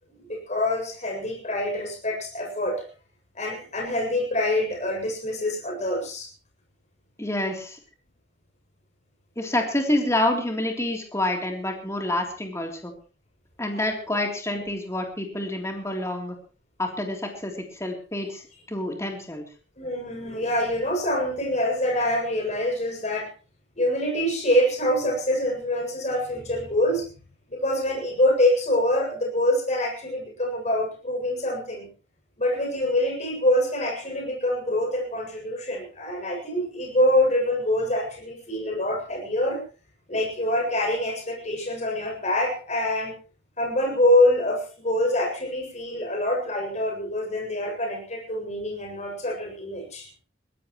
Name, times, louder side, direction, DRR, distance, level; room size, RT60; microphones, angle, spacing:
voice 1, 0.1-2.9 3.3-6.3 14.5-14.6 19.8-23.3 23.8-27.1 27.5-31.9 32.4-39.6 40.1-43.2 43.6-50.1, left 1 dB, 40° left, 1 dB, 7.3 m, -25 dB
voice 2, 7.2-7.8 9.4-12.9 13.6-16.3 16.8-18.4 18.7-19.4, left 1 dB, 15° left, 2 dB, 3.4 m, -27 dB
22.5 x 17.0 x 3.2 m, 0.36 s
head